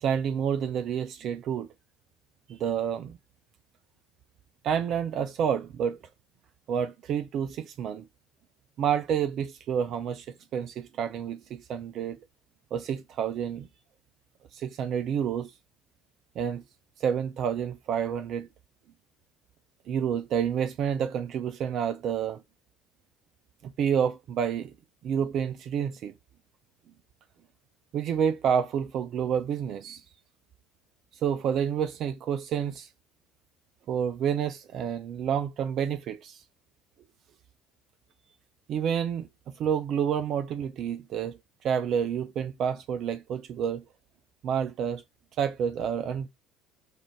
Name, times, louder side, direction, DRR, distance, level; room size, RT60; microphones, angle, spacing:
voice 1, 0.0-1.7 2.5-3.2 4.6-6.0 6.7-8.0 8.8-10.3 10.5-12.2 12.7-13.7 14.5-15.5 16.4-16.6 17.0-18.5 19.9-22.4 23.6-24.7 25.0-26.1 27.9-30.0 31.2-32.9 33.9-36.4 38.7-39.3 39.6-41.4 41.6-43.8 44.4-45.0 45.4-46.3, right 8 dB, 50° right, 0.4 m, -29 dB
6.5 x 2.5 x 3.1 m
figure-of-eight pair, 60°, 0 cm